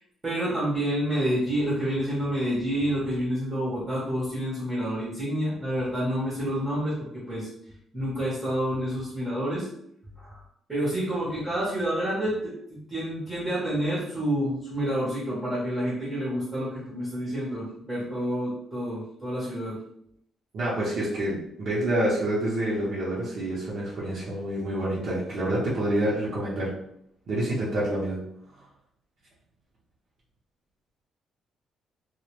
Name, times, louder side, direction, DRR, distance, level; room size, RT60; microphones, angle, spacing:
voice 1, 0.2-7.0 7.3-7.5 7.9-9.7 10.2-10.4 10.7-19.8, equal, 10° right, -8 dB, 0.7 m, -28 dB
voice 2, 20.5-26.7 27.3-28.2, right 1 dB, 55° right, -7 dB, 0.6 m, -27 dB
2.1 x 2.0 x 2.9 m, 0.70 s
cardioid pair, 175°, 0 cm